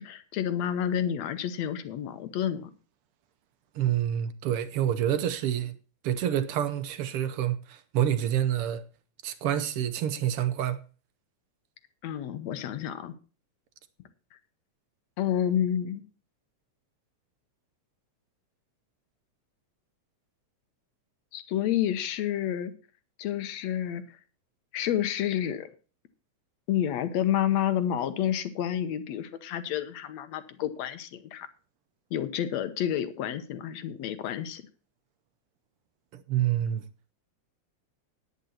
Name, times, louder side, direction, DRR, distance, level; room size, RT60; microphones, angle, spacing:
voice 1, 0.0-2.7 12.0-13.1 15.2-16.0 21.3-22.7 23.2-24.0 24.7-25.7 26.7-31.5 32.1-34.7, left 10 dB, 70° left, 2.1 m, -29 dB
voice 2, 3.7-5.8 6.0-8.8 9.2-10.8 36.1-36.8, right 11 dB, 70° right, 1.5 m, -27 dB
10.5 x 9.8 x 4.3 m
omnidirectional pair, 3.3 m